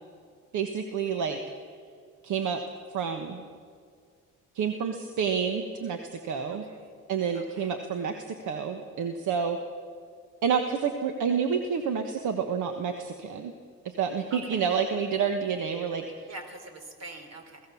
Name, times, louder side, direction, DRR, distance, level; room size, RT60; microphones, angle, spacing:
voice 1, 0.5-1.4 2.2-2.6 2.9-3.5 4.5-6.6 7.1-9.6 10.4-13.5 13.8-16.3, right 6 dB, 75° right, 6 dB, 1.4 m, -29 dB
voice 2, 6.5-6.9 7.3-7.7 14.3-14.6 16.3-17.6, right 2 dB, 55° right, 6 dB, 3.6 m, -45 dB
23.5 x 16.5 x 7.1 m, 2.1 s
cardioid pair, 90°, 30 cm